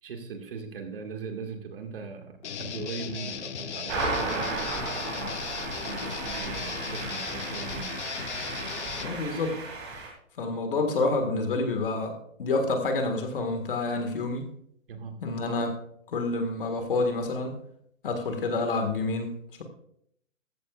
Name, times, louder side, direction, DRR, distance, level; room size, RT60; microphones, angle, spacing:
voice 1, 0.0-4.9 5.9-7.9 14.9-15.2, right 5 dB, 45° right, 4 dB, 2.0 m, -39 dB
Guitar, 2.4-9.1, left 8 dB, 55° left, 0.8 m, -37 dB
sound 1, 3.9-10.1, right 3 dB, 20° right, 2.2 m, -34 dB
voice 2, 9.0-9.6 10.4-14.5 15.2-15.8 16.1-17.6 18.0-19.6, left 3 dB, 40° left, 6 dB, 1.8 m, -28 dB
14.5 x 14.0 x 2.5 m, 0.69 s
hypercardioid pair, 175°, 40 cm